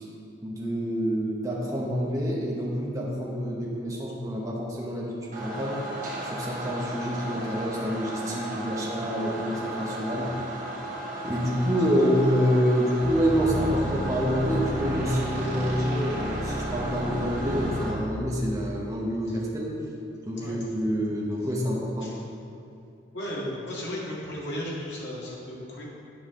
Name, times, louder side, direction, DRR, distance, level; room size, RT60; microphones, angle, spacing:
voice 1, 0.4-5.8 6.2-10.4 11.2-19.7 20.3-22.1, equal, 20° right, -4 dB, 0.9 m, -27 dB
sound 1, 5.3-17.9, right 1 dB, 45° right, 1.1 m, -35 dB
sound 2, 13.0-18.1, right 1 dB, 80° right, 1.6 m, -32 dB
voice 2, 23.1-25.8, equal, 75° left, -5 dB, 1.8 m, -35 dB
8.8 x 5.5 x 3.7 m, 2.7 s
head